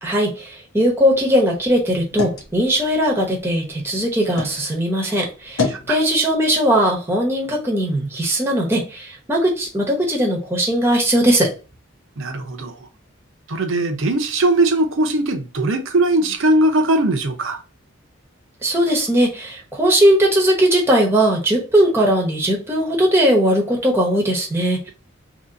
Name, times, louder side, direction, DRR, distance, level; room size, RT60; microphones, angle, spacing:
voice 1, 0.0-11.5 18.6-24.9, equal, 10° right, 0.9 m, -19 dB
sound 1, 0.8-4.6 5.1-5.9, left 4 dB, 85° left, 1.0 m, -30 dB
voice 2, 5.6-6.0 12.2-12.7 13.5-17.6, right 1 dB, 70° right, 0.7 m, -19 dB
2.9 x 2.8 x 3.9 m
head